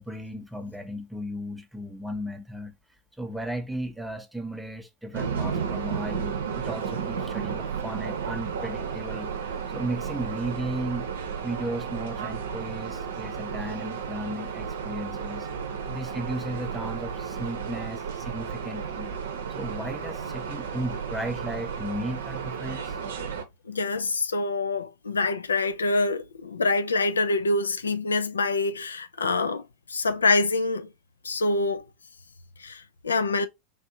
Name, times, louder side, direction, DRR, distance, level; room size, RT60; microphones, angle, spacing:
voice 1, 0.0-2.7 3.2-11.1 11.4-15.5 15.8-19.1 19.5-23.0, right 1 dB, 5° right, 0.6 m, -35 dB
sound 1, 5.1-23.4, right 6 dB, 60° right, 0.7 m, -33 dB
voice 2, 23.7-29.6 29.9-30.9 31.2-31.8 32.6-33.5, left 3 dB, 75° left, 0.4 m, -25 dB
3.5 x 2.6 x 2.5 m
figure-of-eight pair, 90°, 0 cm